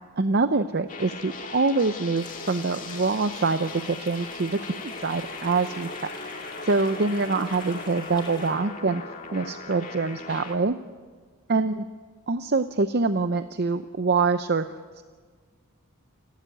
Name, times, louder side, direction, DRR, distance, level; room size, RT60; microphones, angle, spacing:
voice 1, 0.2-6.1 6.6-9.0 9.3-10.8 11.5-11.8 12.3-14.6 15.0-15.1, right 3 dB, 45° right, 10 dB, 0.6 m, -25 dB
sound 1, 0.9-10.6, left 4 dB, 35° left, 2.1 m, -38 dB
sound 2, 2.1-8.5, left 2 dB, 20° left, 5.4 m, -46 dB
29.0 x 12.5 x 9.2 m, 1.5 s
head